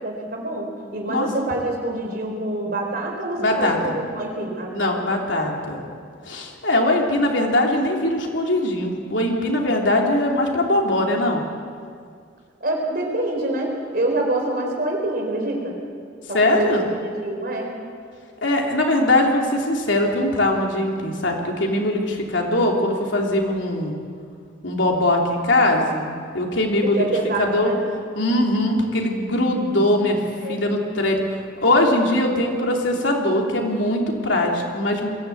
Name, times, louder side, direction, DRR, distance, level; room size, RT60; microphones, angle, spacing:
voice 1, 0.0-5.0 12.6-15.8 16.3-17.7 26.8-27.8 30.4-30.6, right 1 dB, 50° right, 1 dB, 4.2 m, -26 dB
voice 2, 3.4-4.0 4.7-5.8 6.2-11.4 16.3-16.8 18.4-23.9 24.6-27.0 27.4-27.7 28.1-30.2 30.5-35.1, left 1 dB, 85° left, 0 dB, 3.1 m, -21 dB
22.5 x 15.0 x 8.5 m, 2.2 s
head